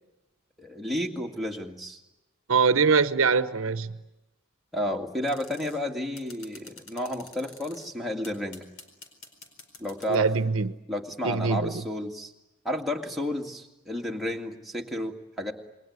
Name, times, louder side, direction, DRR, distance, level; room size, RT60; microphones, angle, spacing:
voice 1, 0.6-2.0 4.7-8.6 9.8-10.3 10.9-12.3 12.6-15.5, left 1 dB, ahead, 2.1 m, -32 dB
voice 2, 2.5-3.9 10.1-10.7 11.2-11.7, right 5 dB, 80° right, 0.9 m, -23 dB
sound 1, 5.2-5.8 6.2-7.9 8.2-10.3, left 4 dB, 75° left, 4.5 m, -48 dB
28.0 x 21.5 x 9.5 m
head